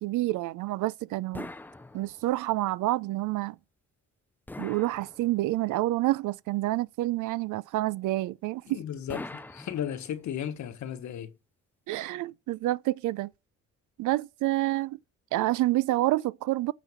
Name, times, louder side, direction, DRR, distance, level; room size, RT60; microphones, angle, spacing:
voice 1, 0.0-1.5 1.9-3.6 4.6-8.8 11.9-13.3 14.0-15.0 15.3-16.7, right 17 dB, 80° right, 0.5 m, -28 dB
sound 1, 1.3-2.5 4.5-5.7 9.1-10.4, left 2 dB, 5° left, 0.4 m, -42 dB
voice 2, 8.7-11.3, left 10 dB, 70° left, 1.3 m, -35 dB
9.9 x 4.0 x 7.1 m
cardioid pair, 90°, 30 cm